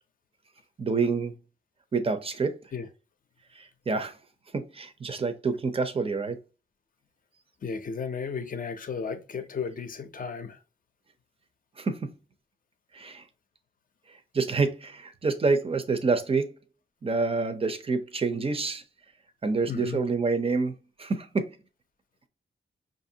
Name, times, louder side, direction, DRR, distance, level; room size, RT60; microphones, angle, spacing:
voice 1, 0.8-1.3 1.9-2.6 3.5-4.2 4.5-6.4 11.8-12.1 12.9-13.2 14.1-16.5 17.0-18.8 19.4-20.7 21.0-21.6, right 4 dB, 30° right, 0.6 m, -27 dB
voice 2, 7.6-10.6 19.7-20.0, left 6 dB, 45° left, 0.5 m, -34 dB
5.6 x 2.6 x 2.7 m
wide cardioid pair, 130°, 20 cm